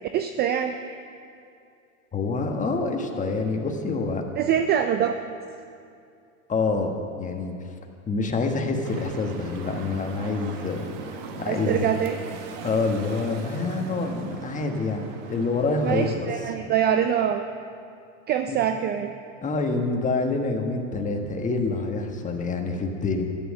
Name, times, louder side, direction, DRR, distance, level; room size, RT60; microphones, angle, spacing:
voice 1, 0.1-0.7 4.4-5.2 11.4-12.3 15.8-17.4 18.3-19.1, right 9 dB, 25° right, 8 dB, 0.4 m, -24 dB
voice 2, 2.1-4.2 6.5-6.9 7.2-7.5 8.1-10.9 11.3-11.9 12.6-16.3 18.5-18.6 19.4-23.2, left 3 dB, 20° left, 3 dB, 1.4 m, -26 dB
sound 1, 8.8-16.2, right 6 dB, 55° right, 1.4 m, -39 dB
12.5 x 9.7 x 6.4 m, 2.5 s
hypercardioid pair, 115°, 40 cm